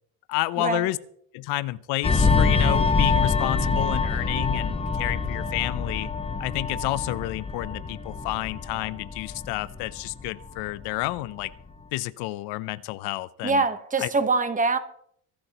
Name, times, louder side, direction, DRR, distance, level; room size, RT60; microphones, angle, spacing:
voice 1, 0.3-1.0 1.3-6.1 6.4-11.5 11.9-13.7 14.0-14.1, left 18 dB, 85° left, 0.7 m, -30 dB
sound 1, 2.0-11.1 11.4-11.7, left 4 dB, 15° left, 1.0 m, -25 dB
voice 2, 13.4-14.8, right 3 dB, 20° right, 1.2 m, -24 dB
23.0 x 12.0 x 3.0 m
cardioid pair, 130°, 38 cm